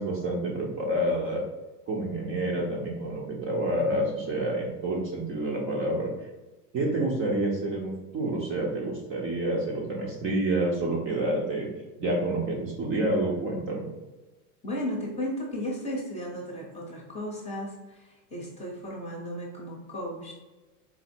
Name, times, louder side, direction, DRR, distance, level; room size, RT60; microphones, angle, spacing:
voice 1, 0.0-1.4 1.9-6.1 6.7-11.7 12.0-13.9, right 1 dB, 25° right, -2 dB, 0.6 m, -28 dB
voice 2, 14.6-20.3, equal, 15° left, -2 dB, 0.8 m, -35 dB
4.1 x 2.0 x 4.3 m, 1.2 s
supercardioid pair, 130°, 46 cm